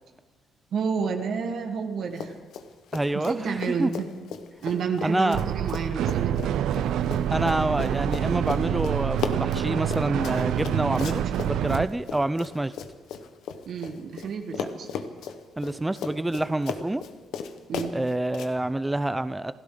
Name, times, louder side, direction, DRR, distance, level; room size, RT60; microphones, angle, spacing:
voice 1, 0.7-2.4 3.1-4.1 4.6-6.6 13.7-14.9 17.7-18.0, right 6 dB, 65° right, 4 dB, 1.5 m, -30 dB
Run, 2.1-2.7 2.9-14.3 14.5-18.5, left 7 dB, 85° left, 1.1 m, -36 dB
voice 2, 2.9-3.9 5.0-5.4 7.3-12.7 14.6-14.7 15.6-17.0 17.9-19.5, right 1 dB, 10° right, 13 dB, 0.5 m, -27 dB
sound 1, 5.3-11.9, right 10 dB, 80° right, 0.5 m, -27 dB
27.5 x 13.0 x 3.9 m, 1.5 s
cardioid pair, 90°, 0 cm